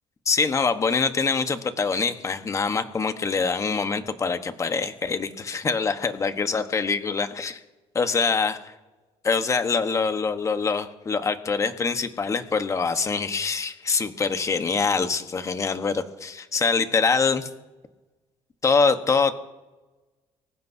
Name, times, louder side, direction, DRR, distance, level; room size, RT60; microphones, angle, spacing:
voice 1, 0.3-7.6 7.9-8.7 9.2-17.5 18.6-19.3, left 5 dB, 30° left, 9 dB, 1.2 m, -24 dB
24.5 x 15.5 x 2.8 m, 1.1 s
cardioid pair, 120°, 11 cm